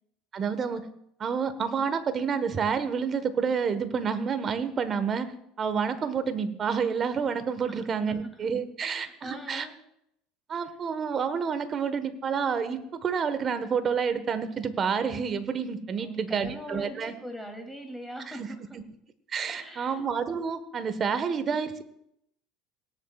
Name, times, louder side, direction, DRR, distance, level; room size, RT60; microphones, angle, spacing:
voice 1, 0.3-0.8 1.2-5.3 5.6-9.7 10.5-17.1 18.3-18.5 19.3-21.8, right 6 dB, 40° right, 11 dB, 1.3 m, -29 dB
voice 2, 8.1-8.5 8.8-9.8 10.6-10.7 16.0-18.8 19.5-20.0, equal, ahead, 3 dB, 2.9 m, -42 dB
18.0 x 10.5 x 2.4 m, 0.75 s
hypercardioid pair, 80°, 0 cm